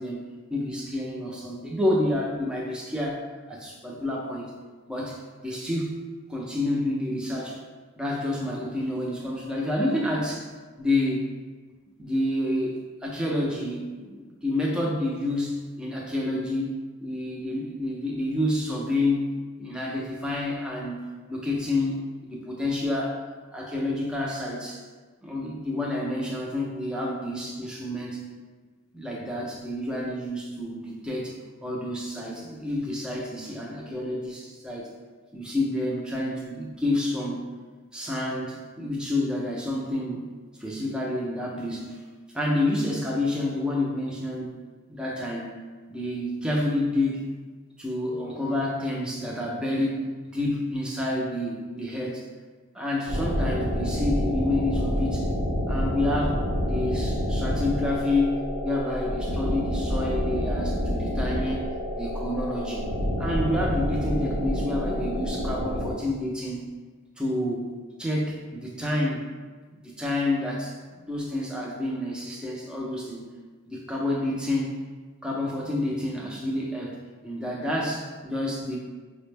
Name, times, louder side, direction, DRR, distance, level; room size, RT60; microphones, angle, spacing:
voice 1, 0.0-3.2 3.5-4.5 4.9-6.0 6.3-7.6 8.0-10.5 10.8-11.3 12.0-16.7 17.0-19.3 19.6-23.2 23.5-24.9 25.2-28.2 28.9-31.3 31.6-34.9 35.3-37.5 37.9-40.2 40.6-42.0 42.3-44.5 44.9-45.5 45.9-47.2 47.8-50.0 50.3-52.2 52.7-55.3 55.7-61.7 61.9-62.9 63.2-66.7 67.2-67.7 68.0-69.3 69.7-73.3 73.7-74.7 75.2-77.0 77.2-78.8, left 1 dB, 5° right, -4 dB, 0.5 m, -29 dB
sound 1, 53.1-65.9, equal, 90° right, 0.8 m, -28 dB
4.9 x 2.1 x 3.2 m, 1.4 s
head